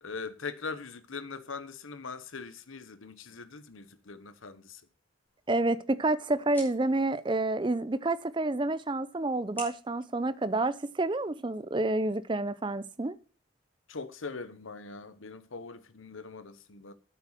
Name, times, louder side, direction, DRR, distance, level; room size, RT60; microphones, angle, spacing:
voice 1, 0.0-4.8 13.9-16.9, left 4 dB, 85° left, 1.0 m, -41 dB
sound 1, 5.3-11.3, left 1 dB, 10° left, 4.0 m, -52 dB
voice 2, 5.5-13.1, right 2 dB, 25° right, 0.5 m, -29 dB
8.9 x 7.0 x 7.5 m
head